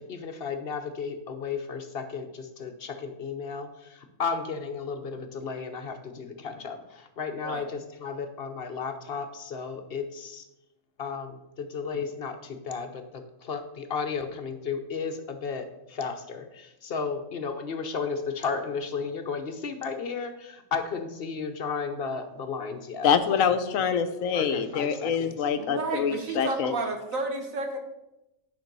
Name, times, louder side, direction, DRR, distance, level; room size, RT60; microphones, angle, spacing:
voice 1, 0.0-10.4 11.0-23.1 23.8-23.9 24.3-25.4, left 5 dB, 50° left, 8 dB, 1.0 m, -34 dB
voice 2, 23.0-26.7, left 7 dB, 90° left, 10 dB, 1.1 m, -25 dB
voice 3, 25.6-27.8, right 3 dB, 85° right, 4 dB, 1.8 m, -31 dB
10.5 x 5.3 x 5.3 m, 0.92 s
omnidirectional pair, 1.4 m